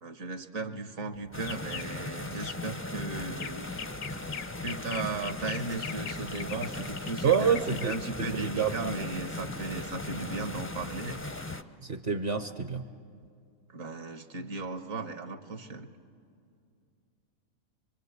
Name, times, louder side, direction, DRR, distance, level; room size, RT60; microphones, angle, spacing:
voice 1, 0.0-3.7 4.6-11.2 13.7-15.9, right 3 dB, 70° right, 7 dB, 1.6 m, -36 dB
sound 1, 1.1-10.7, left 8 dB, 85° left, 1.4 m, -43 dB
sound 2, 1.3-11.6, left 2 dB, 15° left, 0.4 m, -38 dB
voice 2, 7.2-7.9 8.3-8.9 11.8-12.8, right 7 dB, 50° right, 8 dB, 0.8 m, -27 dB
25.0 x 24.0 x 8.1 m, 2.4 s
omnidirectional pair, 1.5 m